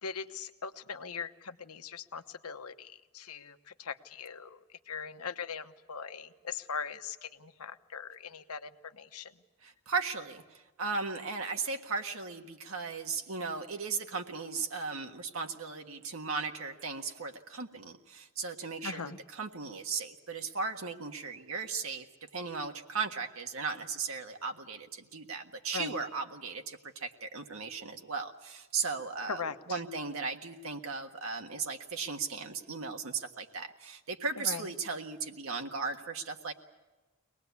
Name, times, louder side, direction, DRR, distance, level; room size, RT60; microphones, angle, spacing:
voice 1, 0.0-4.6 4.9-9.3 18.8-19.2 25.7-25.9 29.3-29.8 34.4-34.6, left 6 dB, 85° left, 9 dB, 1.1 m, -40 dB
voice 2, 9.6-22.1 22.3-36.5, right 4 dB, 70° right, 4 dB, 1.5 m, -36 dB
24.0 x 19.5 x 8.3 m, 1.2 s
head